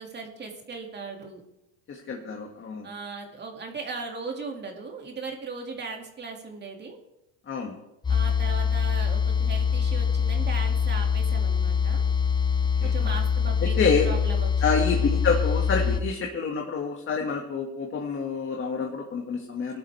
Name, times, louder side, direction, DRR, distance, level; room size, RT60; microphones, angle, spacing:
voice 1, 0.0-1.4 2.8-7.0 8.1-12.0 12.8-13.8 14.0-15.0, right 4 dB, 25° right, 1 dB, 2.4 m, -38 dB
voice 2, 1.9-2.9 7.5-7.8 12.8-13.2 13.6-14.1 14.6-19.8, left 5 dB, 30° left, 0 dB, 2.0 m, -28 dB
sound 1, 8.0-16.0, left 6 dB, 10° left, 0.6 m, -24 dB
19.0 x 12.0 x 3.5 m, 0.89 s
supercardioid pair, 110°, 39 cm